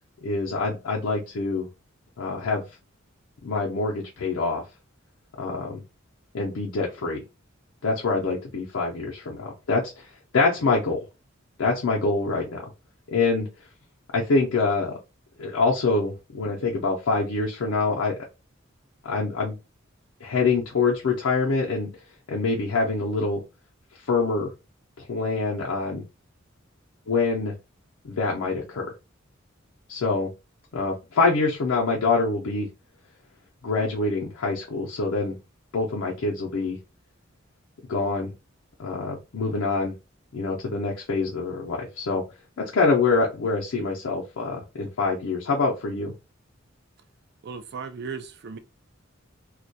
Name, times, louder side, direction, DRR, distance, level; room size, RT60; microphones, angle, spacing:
voice 1, 0.2-1.7 2.2-2.7 3.4-4.6 5.4-5.8 6.3-7.2 7.8-10.1 10.3-11.0 11.6-12.7 13.1-13.5 14.1-14.9 15.4-18.2 19.0-19.6 20.2-21.9 22.3-23.4 24.1-24.5 25.1-26.0 27.1-27.5 28.0-28.9 29.9-30.3 30.7-32.7 33.6-35.4 35.7-36.8 37.9-38.3 38.8-39.9 40.3-42.2 42.6-46.1, left 3 dB, 80° left, 0.5 m, -25 dB
voice 2, 47.4-48.6, right 5 dB, 55° right, 0.4 m, -36 dB
2.2 x 2.1 x 2.6 m
head